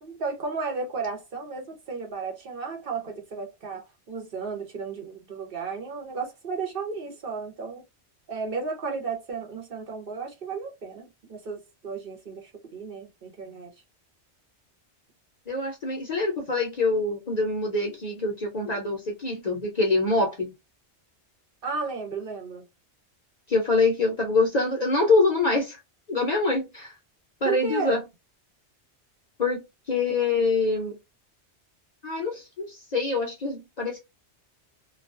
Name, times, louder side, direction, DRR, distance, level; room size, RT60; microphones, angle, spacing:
voice 1, 0.0-7.8 8.3-13.7 21.6-22.6 27.4-28.0, right 4 dB, 55° right, 0.9 m, -34 dB
voice 2, 15.5-20.5 23.5-25.8 26.1-27.0 27.4-28.0 29.4-31.0 32.0-34.0, left 3 dB, 45° left, 0.6 m, -25 dB
2.3 x 2.2 x 2.4 m
omnidirectional pair, 1.2 m